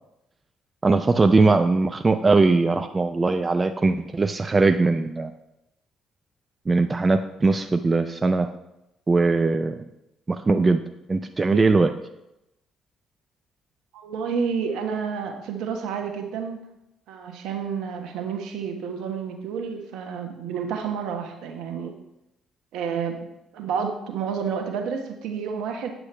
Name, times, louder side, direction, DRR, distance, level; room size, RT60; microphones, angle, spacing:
voice 1, 0.8-5.3 6.7-8.5 9.1-9.7 10.3-10.8 11.1-11.9, right 3 dB, 30° right, 8 dB, 0.4 m, -20 dB
voice 2, 13.9-16.6 17.1-21.9 22.7-23.3 23.5-25.9, right 6 dB, 70° right, 4 dB, 1.1 m, -30 dB
8.1 x 7.7 x 3.3 m, 0.89 s
hypercardioid pair, 50°, 0 cm